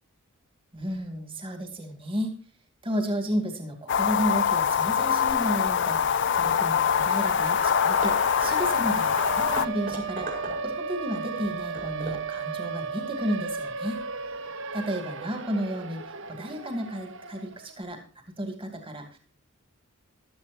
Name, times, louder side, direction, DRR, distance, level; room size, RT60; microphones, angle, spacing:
voice 1, 0.7-2.3 2.8-10.3 10.6-14.0 14.7-18.0 18.4-19.2, equal, 25° right, 5 dB, 2.4 m, -32 dB
sound 1, 3.9-9.7, left 7 dB, 60° left, 0.5 m, -24 dB
Siren, 5.3-5.4 5.7-17.7, right 5 dB, 60° right, 0.9 m, -36 dB
Hammer / Wood, 7.5-7.7 8.0-10.9 11.4-12.4, right 1 dB, 45° right, 5.0 m, -39 dB
15.5 x 12.5 x 2.6 m, 0.39 s
head